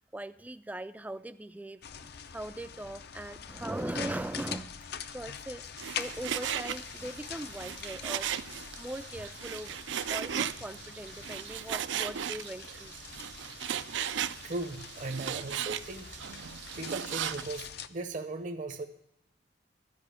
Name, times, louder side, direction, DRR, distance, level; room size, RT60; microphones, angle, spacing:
voice 1, 0.1-8.3 8.8-9.8 10.1-12.9, right 1 dB, 10° right, 12 dB, 0.3 m, -40 dB
sound 1, 1.8-17.9, left 7 dB, 55° left, 0.5 m, -44 dB
Frying (food), 5.8-17.6, right 9 dB, 75° right, 0.4 m, -37 dB
voice 2, 14.4-16.1 16.8-18.9, right 2 dB, 45° right, 5 dB, 0.7 m, -37 dB
12.0 x 5.3 x 8.2 m, 0.82 s
head